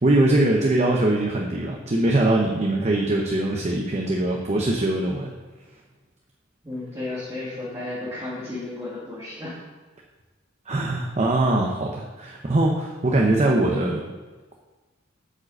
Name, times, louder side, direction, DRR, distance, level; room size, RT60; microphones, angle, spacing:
voice 1, 0.0-5.3 10.7-14.1, right 2 dB, 35° right, 0 dB, 0.7 m, -22 dB
voice 2, 6.6-9.6, left 2 dB, 15° right, -10 dB, 2.2 m, -33 dB
8.4 x 5.1 x 6.4 m, 1.3 s
head